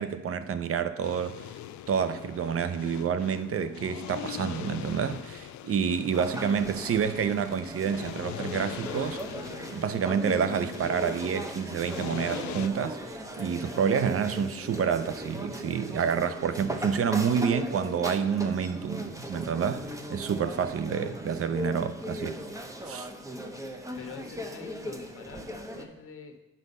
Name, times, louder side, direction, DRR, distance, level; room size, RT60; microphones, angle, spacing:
voice 1, 0.0-1.4 1.9-9.2 9.7-22.4 22.9-23.1, right 7 dB, 50° right, 0.7 m, -28 dB
sound 1, 1.0-12.7, left 11 dB, 70° left, 0.5 m, -42 dB
sound 2, 6.1-25.9, equal, 10° right, 0.9 m, -38 dB
voice 2, 24.0-26.4, left 4 dB, 45° left, 1.2 m, -44 dB
8.3 x 5.5 x 5.4 m
cardioid pair, 90°, 30 cm